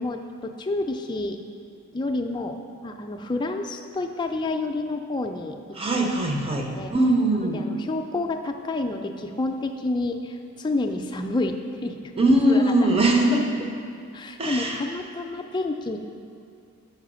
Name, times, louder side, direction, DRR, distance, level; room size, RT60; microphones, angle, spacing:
voice 1, 0.0-1.4 1.9-2.6 2.8-5.6 5.9-6.1 6.5-6.9 7.4-12.1 12.5-12.7 13.1-13.2 13.5-13.8 14.1-16.0, left 2 dB, 20° left, 4 dB, 0.3 m, -29 dB
voice 2, 5.8-7.6 12.2-13.5 14.4-14.8, right 1 dB, 25° right, 1 dB, 0.6 m, -21 dB
5.7 x 5.4 x 6.1 m, 2.3 s
head